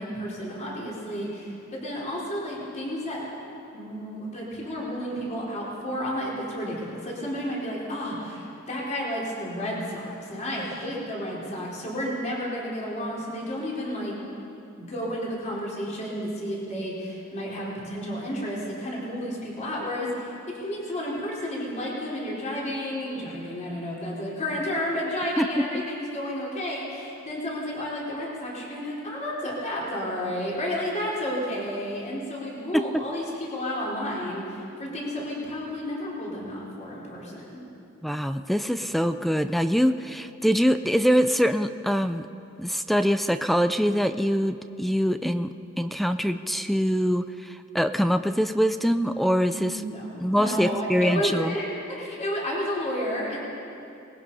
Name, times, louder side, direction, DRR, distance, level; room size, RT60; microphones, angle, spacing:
voice 1, 0.0-3.2 3.7-14.2 14.8-37.6 49.5-53.4, equal, 35° left, -5 dB, 4.3 m, -31 dB
voice 2, 38.0-42.3 42.6-49.7 50.2-51.5, equal, ahead, 9 dB, 0.5 m, -24 dB
27.0 x 20.5 x 5.6 m, 2.7 s
head